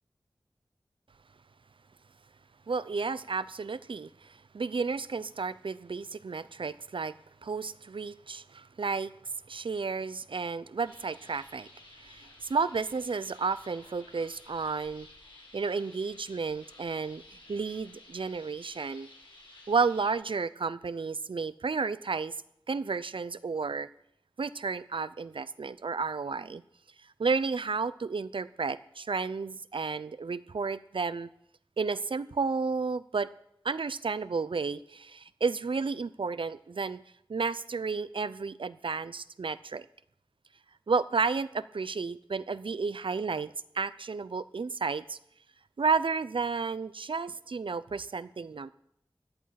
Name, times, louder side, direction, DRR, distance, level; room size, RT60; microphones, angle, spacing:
voice 1, 2.7-7.2 7.4-9.1 9.5-11.7 12.0-15.1 15.5-17.2 17.5-19.1 19.7-22.3 22.7-23.9 24.4-26.6 27.2-31.3 31.8-33.3 33.6-37.0 37.3-39.9 40.9-45.2 45.8-48.7, right 4 dB, 80° right, 16 dB, 0.6 m, -32 dB
sound 1, 10.8-20.1, left 2 dB, 85° left, 4.7 m, -54 dB
17.0 x 11.0 x 5.8 m, 0.74 s
wide cardioid pair, 55°, 9 cm